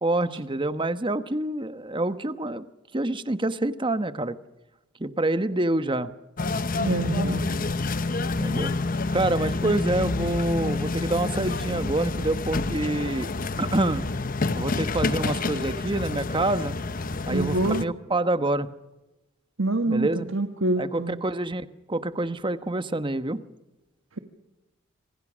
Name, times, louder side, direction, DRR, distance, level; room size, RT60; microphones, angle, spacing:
voice 1, 0.0-2.7 2.9-4.4 5.0-6.1 8.4-8.7 9.1-13.3 13.6-14.1 14.5-16.8 17.3-18.7 19.9-20.3 20.8-23.4, right 2 dB, 25° right, 12 dB, 1.1 m, -27 dB
sound 1, 6.4-17.9, left 3 dB, 45° left, 0.9 m, -28 dB
voice 2, 6.8-7.5 17.3-17.9 19.6-21.2, right 2 dB, 75° right, 6 dB, 1.6 m, -26 dB
27.5 x 25.0 x 6.3 m, 1.0 s
head